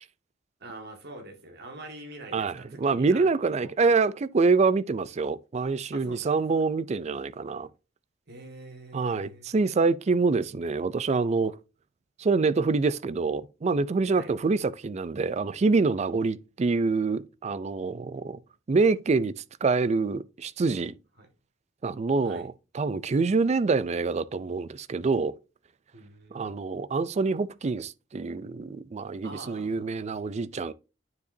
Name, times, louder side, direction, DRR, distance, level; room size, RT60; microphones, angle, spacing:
voice 1, 0.6-3.3 3.6-3.7 5.9-6.4 8.3-9.5 14.1-14.3 21.2-21.3 22.2-22.5 25.9-26.8 29.2-30.0, right 2 dB, 55° right, 1.8 m, -45 dB
voice 2, 2.3-7.7 8.9-11.5 12.2-18.4 18.7-19.3 19.6-20.9 21.8-25.3 26.3-30.7, right 4 dB, 35° right, 0.4 m, -26 dB
9.4 x 5.0 x 2.7 m
head